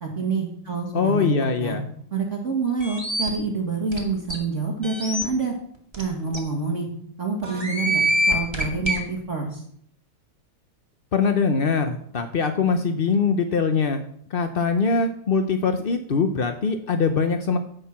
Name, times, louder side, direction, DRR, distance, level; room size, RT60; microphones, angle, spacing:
voice 1, 0.0-1.3 1.6-1.8 2.1-5.5 6.0-6.9 7.2-9.6, right 4 dB, 40° right, 0 dB, 2.2 m, -27 dB
voice 2, 0.9-1.8 11.1-14.0 14.3-17.6, left 5 dB, 55° left, 7 dB, 0.6 m, -22 dB
sound 1, 2.8-3.3 3.9-4.0 4.3-4.4 4.8-5.2 5.9-6.0 6.3-6.4 7.4-9.0, right 1 dB, 15° right, 2.2 m, -24 dB
16.0 x 6.6 x 6.0 m, 0.66 s
omnidirectional pair, 2.1 m